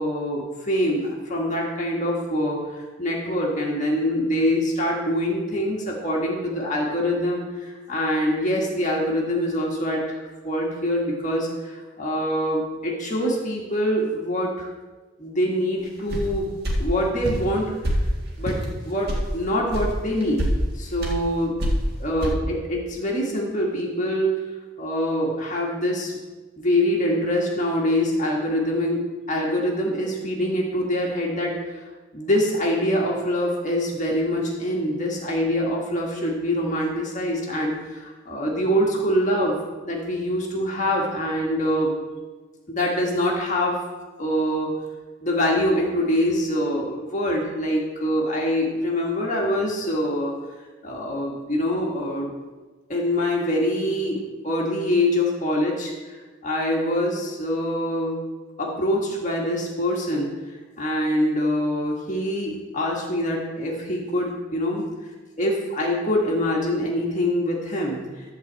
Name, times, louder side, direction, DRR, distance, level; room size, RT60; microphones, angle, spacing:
voice 1, 0.0-14.7 15.2-16.5 16.8-17.7 18.4-20.5 20.7-21.6 22.0-24.3 24.8-26.2 26.6-31.8 32.1-39.6 39.8-41.9 42.7-43.8 44.2-44.7 45.2-50.3 50.8-52.3 52.9-58.2 58.6-60.4 60.8-64.8 65.4-68.3, equal, 35° left, -2 dB, 1.7 m, -24 dB
sound 1, 16.1-16.3 16.6-16.8 17.2-17.4 17.8-18.0 18.4-18.6 19.1-19.2 19.7-19.9 20.2-20.5 21.0-21.2 21.6-21.9 22.2-22.3, equal, 50° right, 1.9 m, -24 dB
12.0 x 4.1 x 7.5 m, 1.3 s
head